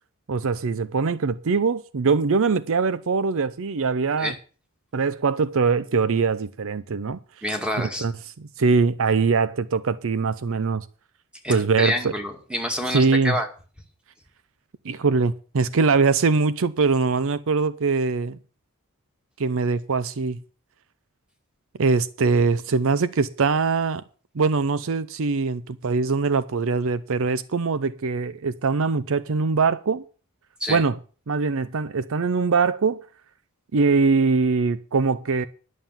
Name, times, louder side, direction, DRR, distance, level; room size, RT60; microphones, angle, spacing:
voice 1, 0.3-4.3 4.9-7.2 7.8-8.1 8.6-10.9 11.5-12.1 12.9-13.3 14.8-18.4 19.4-20.4 21.8-24.0 24.3-30.0 30.7-30.9 31.3-33.0 33.7-35.5, right 4 dB, 65° right, 0.6 m, -22 dB
voice 2, 7.4-8.1 11.4-13.5 30.6-30.8, left 1 dB, 5° right, 2.2 m, -27 dB
11.0 x 7.3 x 7.4 m
head